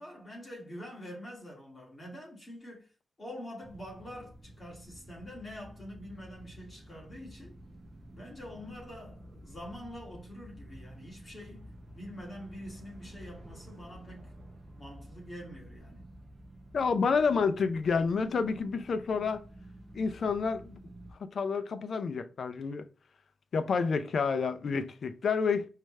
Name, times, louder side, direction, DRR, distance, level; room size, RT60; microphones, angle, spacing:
voice 1, 0.0-2.9 3.2-7.6 8.1-11.7 12.0-14.3 14.8-16.1, equal, 20° left, 2.1 m, -45 dB
sound 1, 3.6-21.1, right 1 dB, 35° right, 0.8 m, -51 dB
voice 2, 16.7-19.4 19.9-20.8 21.2-22.8 23.5-25.7, left 5 dB, 55° left, 0.5 m, -29 dB
4.9 x 3.2 x 3.2 m
wide cardioid pair, 170°, 0 cm